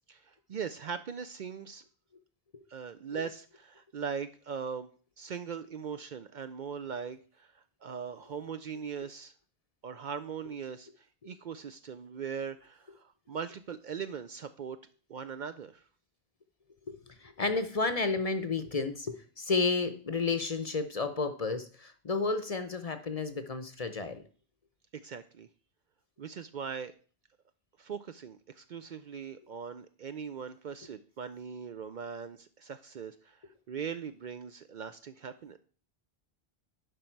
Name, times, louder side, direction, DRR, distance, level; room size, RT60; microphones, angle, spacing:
voice 1, 0.1-1.8 2.7-4.9 5.2-9.3 9.8-14.8 15.1-15.8 24.9-25.5 26.2-26.9 27.8-35.6, right 6 dB, 55° right, 10 dB, 0.6 m, -40 dB
voice 2, 16.9-24.2, left 4 dB, 40° left, 9 dB, 0.7 m, -32 dB
11.0 x 5.4 x 4.5 m, 0.40 s
omnidirectional pair, 1.0 m